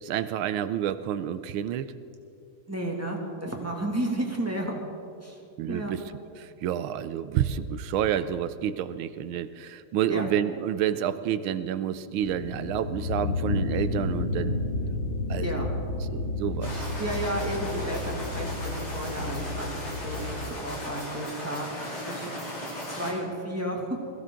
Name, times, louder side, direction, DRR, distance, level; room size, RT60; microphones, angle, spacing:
voice 1, 0.0-1.9 5.6-6.0 6.4-14.6 15.3-15.7 16.1-16.9, right 10 dB, 80° right, 13 dB, 1.4 m, -29 dB
voice 2, 2.7-4.8 5.2-5.4 5.7-5.9 10.1-10.3 15.4-15.7 17.0-19.7 20.0-21.7 22.0-22.4 22.9-24.0, right 1 dB, 5° right, -1 dB, 1.8 m, -32 dB
sound 1, 12.2-20.5, left 3 dB, 85° left, 2.5 m, -31 dB
sound 2, 16.6-23.1, equal, 70° left, 3.8 m, -36 dB
21.5 x 15.5 x 3.8 m, 2.5 s
omnidirectional pair, 2.3 m